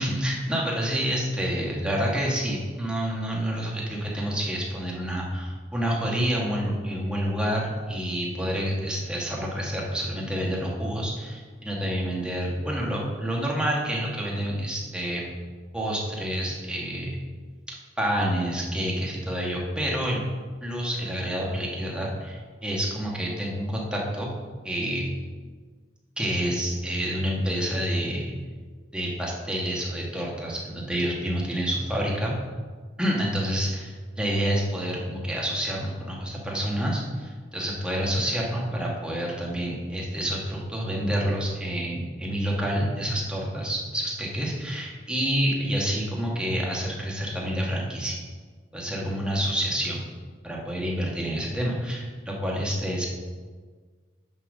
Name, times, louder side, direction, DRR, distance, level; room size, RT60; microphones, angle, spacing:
voice 1, 0.0-15.2 15.7-17.1 18.0-20.2 20.6-24.3 24.6-25.1 26.2-28.3 28.9-32.3 33.0-48.2 48.7-50.0 50.4-53.1, equal, 5° right, -3 dB, 1.5 m, -28 dB
7.4 x 5.6 x 6.2 m, 1.5 s
head